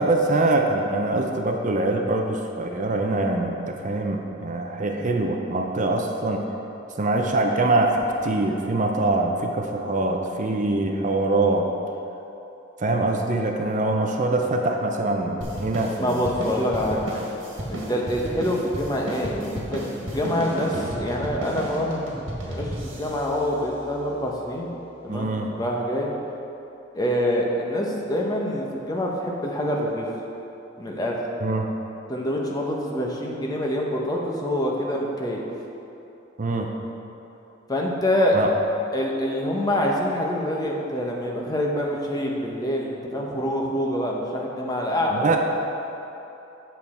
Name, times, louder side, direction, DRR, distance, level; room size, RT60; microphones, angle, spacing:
voice 1, 0.0-6.4 7.0-11.7 12.8-16.3 17.1-17.2 25.1-25.5 31.4-31.7 36.4-36.7 38.3-38.5 45.1-45.4, right 2 dB, 40° right, 2 dB, 0.6 m, -24 dB
sound 1, 15.4-24.2, right 1 dB, 75° right, 1.7 m, -33 dB
voice 2, 16.0-17.0 17.7-22.1 22.4-24.7 25.0-26.1 26.9-30.1 30.8-31.2 32.1-35.4 37.7-38.4 38.9-45.4, equal, 20° left, -2 dB, 1.0 m, -26 dB
8.5 x 7.0 x 4.3 m, 3.0 s
head